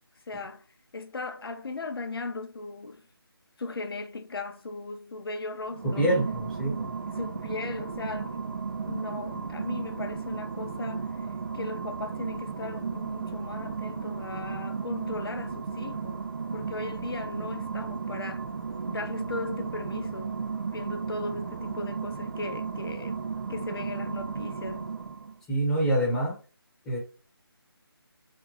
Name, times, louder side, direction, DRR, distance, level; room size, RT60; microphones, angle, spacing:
voice 1, 0.3-0.6 0.9-3.0 3.6-6.1 7.1-11.1 11.5-16.3 16.5-18.5 18.9-20.3 20.7-23.2 23.5-24.9, left 3 dB, 65° left, 0.6 m, -37 dB
sound 1, 5.6-25.4, right 5 dB, 55° right, 0.4 m, -34 dB
voice 2, 5.8-6.9 25.5-26.3 26.8-27.0, right 1 dB, 5° left, 1.2 m, -26 dB
3.5 x 2.5 x 3.1 m
figure-of-eight pair, 165°, 13 cm